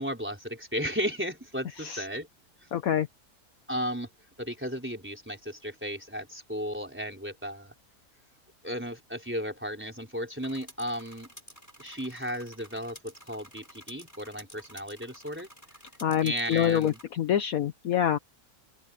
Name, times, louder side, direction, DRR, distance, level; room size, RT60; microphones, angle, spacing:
voice 1, 0.0-2.3 3.7-4.1 4.4-7.7 8.6-11.3 11.8-15.5 16.2-17.0, equal, 5° right, 4.4 m, -34 dB
voice 2, 2.7-3.1 16.0-18.2, left 10 dB, 65° left, 1.2 m, -26 dB
sound 1, 10.4-17.1, equal, 10° left, 8.0 m, -51 dB
open air
omnidirectional pair, 1.7 m